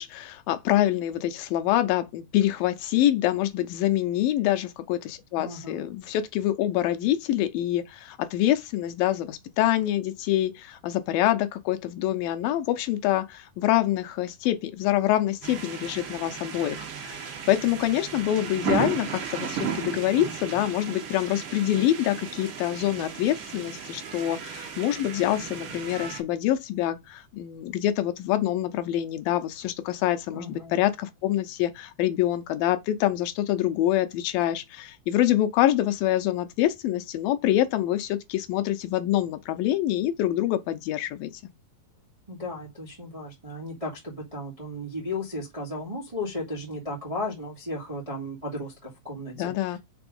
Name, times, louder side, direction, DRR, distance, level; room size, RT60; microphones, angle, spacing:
voice 1, 0.0-41.3 49.4-49.8, left 13 dB, 90° left, 2.4 m, -26 dB
voice 2, 5.4-5.9 30.3-30.8 42.3-49.8, left 1 dB, 15° right, 1.5 m, -35 dB
sound 1, 15.4-26.2, right 7 dB, 75° right, 1.2 m, -35 dB
6.1 x 3.4 x 5.2 m
omnidirectional pair, 4.1 m